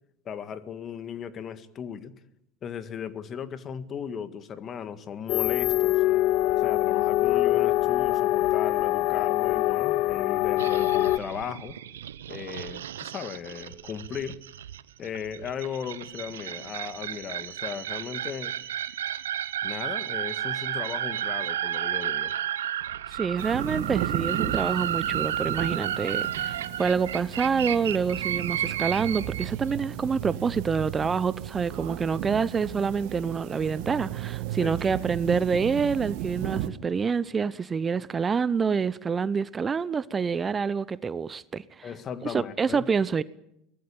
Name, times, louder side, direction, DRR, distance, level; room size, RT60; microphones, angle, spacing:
voice 1, 0.2-2.1 2.6-6.0 6.6-11.8 12.3-14.4 15.0-18.5 19.6-22.4 34.6-35.0 41.8-42.9, left 7 dB, 35° left, 1.8 m, -36 dB
sound 1, 5.3-11.2, left 16 dB, 55° left, 0.9 m, -24 dB
sound 2, 10.6-29.5, right 10 dB, 75° right, 0.9 m, -32 dB
voice 2, 23.1-41.9 42.2-43.2, right 5 dB, 25° right, 0.8 m, -27 dB
sound 3, 23.4-36.7, right 13 dB, 60° right, 1.8 m, -35 dB
24.0 x 19.0 x 8.8 m
hypercardioid pair, 75°, 0 cm